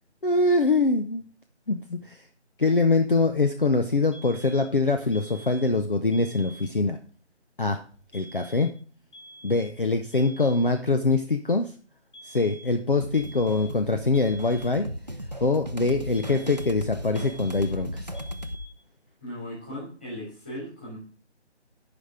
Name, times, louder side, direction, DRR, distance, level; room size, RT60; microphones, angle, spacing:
voice 1, 0.2-1.2 1.7-2.2 2.6-7.0 7.6-7.8 8.1-8.7 9.4-11.7 12.2-14.9 15.4-18.1, left 3 dB, 50° left, 6 dB, 0.7 m, -24 dB
sound 1, 4.1-4.8 5.1-5.8 6.1-6.8 8.1-8.8 9.1-9.8 10.1-10.8 12.1-12.8 13.1-13.8 14.1-14.8 16.1-16.8 17.1-17.8 18.1-18.8, right 1 dB, 85° left, 1.9 m, -48 dB
sound 2, 13.0-18.6, equal, 40° right, 0.5 m, -36 dB
voice 2, 19.2-21.0, equal, 10° left, -10 dB, 3.2 m, -37 dB
9.8 x 5.2 x 4.9 m, 0.41 s
figure-of-eight pair, 180°, 35 cm